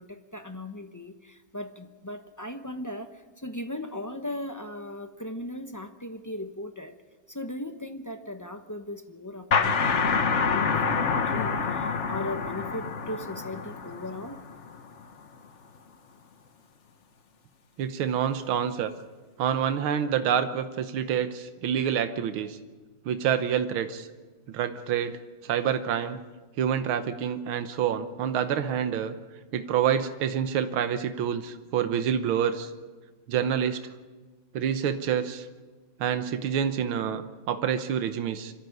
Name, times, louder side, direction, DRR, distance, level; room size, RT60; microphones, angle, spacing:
voice 1, 0.0-7.0 7.3-14.4, left 1 dB, 25° left, 6 dB, 0.3 m, -38 dB
sound 1, 9.5-14.9, left 5 dB, 45° left, 1.1 m, -27 dB
voice 2, 17.8-18.9 19.4-22.6 23.1-24.1 24.5-26.2 26.6-29.1 29.5-32.7 33.3-33.8 34.5-35.5 36.0-38.5, right 8 dB, 85° right, 8 dB, 1.8 m, -27 dB
25.5 x 13.5 x 9.3 m, 1.3 s
omnidirectional pair, 2.2 m